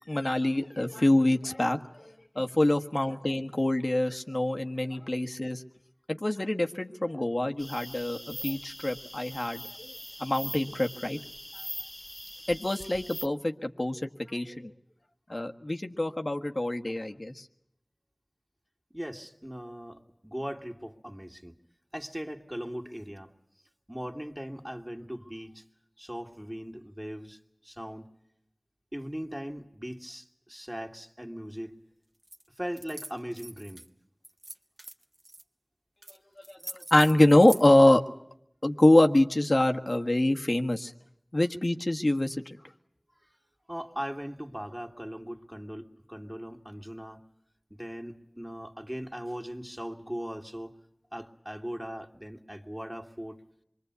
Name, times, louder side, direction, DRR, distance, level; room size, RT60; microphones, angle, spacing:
voice 1, 0.1-5.6 6.1-9.9 10.2-11.2 12.5-14.7 15.3-17.4 36.5-38.0 38.6-40.9 41.3-42.6, left 1 dB, 55° left, 5 dB, 1.6 m, -25 dB
sound 1, 7.6-13.3, left 1 dB, 25° left, 1.1 m, -42 dB
voice 2, 18.9-21.6 21.9-23.4 23.9-25.6 26.0-28.1 28.9-31.7 32.6-33.9 43.2-43.3 43.7-47.2 47.7-50.8 51.1-53.4, equal, 10° right, 2 dB, 2.4 m, -39 dB
sound 2, 32.2-32.4 32.7-33.9 34.2-35.4 36.0-36.2 36.4-37.7, right 1 dB, 55° right, 1.6 m, -43 dB
27.0 x 23.0 x 8.3 m, 0.75 s
wide cardioid pair, 40°, 0 cm